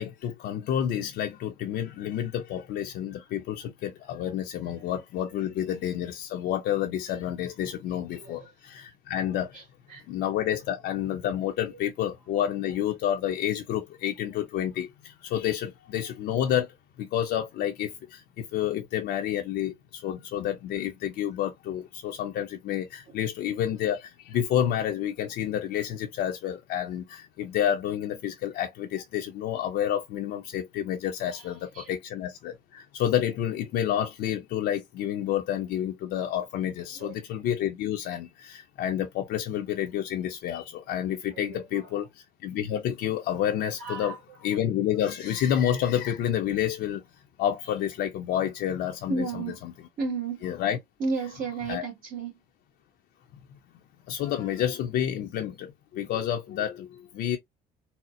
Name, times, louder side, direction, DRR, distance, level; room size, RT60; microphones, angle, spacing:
voice 1, 0.0-9.6 10.1-16.7 17.0-44.2 44.4-47.0 47.4-49.4 50.4-50.8 51.7-51.8 54.1-57.4, left 10 dB, 75° left, 0.6 m, -29 dB
voice 2, 8.1-8.5 9.5-9.6 9.9-10.1 10.5-10.6 11.7-11.8 23.1-23.2 31.3-31.9 36.9-37.2 41.3-42.0 43.8-44.2 49.1-49.6 50.0-50.5 51.0-52.4, right 4 dB, 55° right, 1.9 m, -34 dB
4.2 x 2.0 x 2.4 m
cardioid pair, 110°, 17 cm